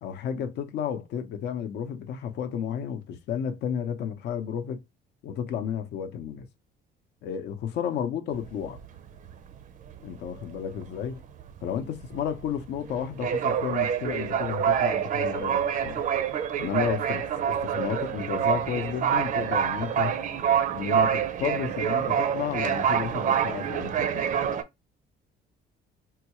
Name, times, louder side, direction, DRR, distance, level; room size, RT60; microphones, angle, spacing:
voice 1, 0.0-4.8 5.2-6.5 7.2-8.8 10.0-11.2 11.6-16.0 16.6-20.1 20.7-24.3, left 8 dB, 65° left, 0.6 m, -32 dB
sound 1, 8.3-9.5 9.9-10.1 10.4-24.6, right 8 dB, 45° right, 0.5 m, -27 dB
3.8 x 2.3 x 2.9 m
cardioid pair, 140°, 19 cm